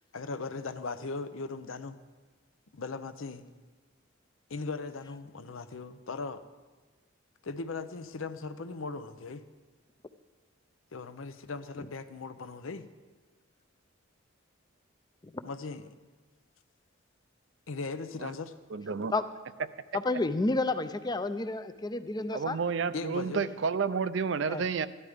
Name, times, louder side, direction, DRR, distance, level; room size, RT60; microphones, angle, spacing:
voice 1, 0.1-2.0 2.7-3.5 4.5-6.4 7.4-9.4 10.9-12.9 15.4-15.9 17.7-18.5 22.9-23.4, left 3 dB, 85° left, 11 dB, 0.7 m, -38 dB
voice 2, 18.7-19.1 22.3-24.9, right 5 dB, 65° right, 14 dB, 0.5 m, -30 dB
voice 3, 19.9-22.6 24.5-24.6, left 2 dB, 20° left, 11 dB, 0.5 m, -30 dB
13.5 x 11.0 x 5.0 m, 1.4 s
head